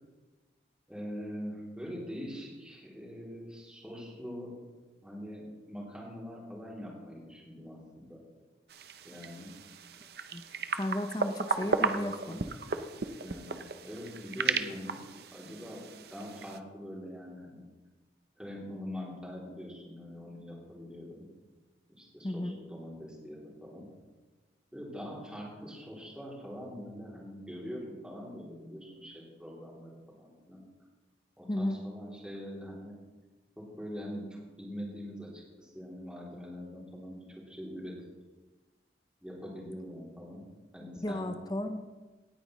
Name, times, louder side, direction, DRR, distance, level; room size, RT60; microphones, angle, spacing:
voice 1, 0.9-4.6 5.0-8.2 9.0-9.5 11.5-12.3 13.1-15.8 16.1-17.6 18.4-21.2 21.9-23.9 24.7-30.6 31.4-32.9 33.6-37.9 39.2-40.5 40.7-41.3, equal, 5° right, -5 dB, 2.9 m, -43 dB
sound 1, 8.7-16.6, right 5 dB, 60° right, 0.6 m, -35 dB
voice 2, 10.8-12.4 22.2-22.5 31.5-31.8 41.0-41.8, left 1 dB, 20° left, 8 dB, 0.5 m, -33 dB
18.0 x 9.1 x 3.1 m, 1.3 s
head